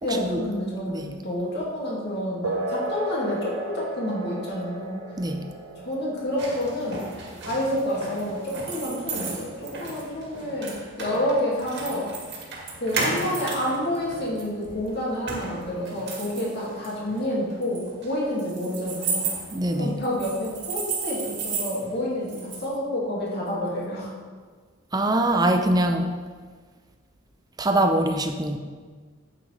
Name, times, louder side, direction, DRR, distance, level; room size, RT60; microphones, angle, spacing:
voice 1, 0.0-5.0 5.8-7.1 7.4-12.1 12.8-19.3 19.8-24.1, left 1 dB, 55° left, -5 dB, 2.6 m, -29 dB
sound 1, 2.4-10.4, right 2 dB, 85° right, 1.0 m, -36 dB
sound 2, 6.4-22.7, right 4 dB, 60° right, 2.0 m, -34 dB
voice 2, 19.5-20.0 24.9-26.1 27.6-28.6, right 1 dB, 20° right, 5 dB, 0.6 m, -23 dB
9.1 x 8.4 x 3.5 m, 1.5 s
head